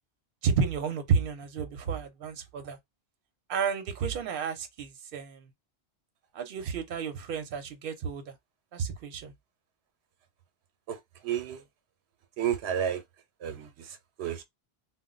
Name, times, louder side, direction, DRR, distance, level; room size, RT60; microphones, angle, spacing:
voice 1, 0.4-2.8 3.5-5.5 6.3-8.3 8.7-9.3, right 6 dB, 60° right, 0.8 m, -31 dB
voice 2, 10.9-11.6 12.4-13.0 13.4-14.4, right 9 dB, 85° right, 0.8 m, -32 dB
2.2 x 2.0 x 3.7 m
omnidirectional pair, 1.1 m